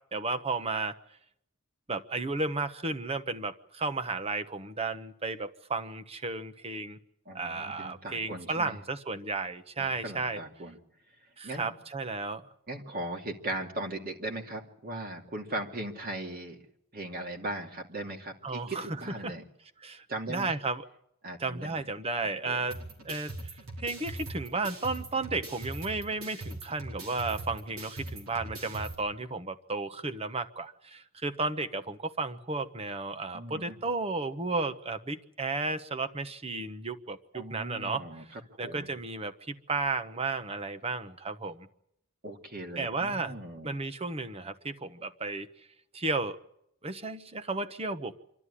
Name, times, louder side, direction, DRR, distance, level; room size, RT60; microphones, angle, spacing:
voice 1, 0.1-0.9 1.9-7.0 7.3-10.4 11.4-12.4 18.4-19.3 19.8-20.8 21.4-22.8 23.0-41.7 42.8-43.4 43.6-45.5 45.9-46.4 46.8-48.2, right 3 dB, 30° right, 10 dB, 1.1 m, -33 dB
voice 2, 7.3-8.8 9.8-10.8 11.4-11.7 12.7-16.6 16.9-19.4 20.1-20.6 21.2-21.8 22.4-22.6 33.3-33.8 37.3-38.2 38.6-38.9 42.2-43.8, right 1 dB, 45° right, 2 dB, 2.6 m, -38 dB
sound 1, 22.7-28.9, right 2 dB, 85° right, 4.7 m, -41 dB
26.0 x 13.0 x 10.0 m, 0.77 s
head